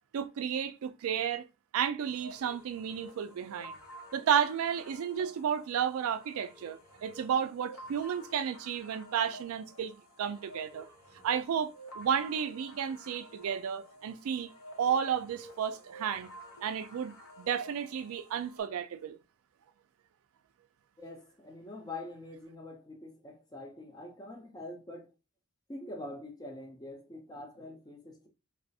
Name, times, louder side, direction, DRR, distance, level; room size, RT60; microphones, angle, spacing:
voice 1, 0.1-1.4 1.7-3.8 4.1-10.9 11.2-14.5 14.8-16.3 16.6-19.2, right 8 dB, 70° right, 0.3 m, -32 dB
sound 1, 2.1-18.6, right 1 dB, 80° left, 0.7 m, -51 dB
voice 2, 21.0-25.1 25.7-28.3, left 2 dB, 20° left, 0.5 m, -45 dB
2.4 x 2.0 x 2.6 m
head